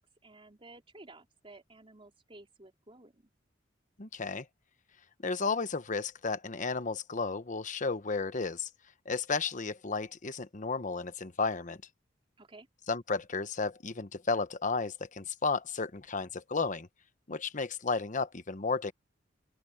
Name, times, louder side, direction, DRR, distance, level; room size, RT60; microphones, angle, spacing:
voice 1, 0.2-3.3 12.4-12.7, right 2 dB, 30° right, 3.4 m, -54 dB
voice 2, 4.0-4.5 5.2-8.7 9.0-11.8 12.9-16.9 17.3-18.9, left 4 dB, 45° left, 1.1 m, -33 dB
open air
head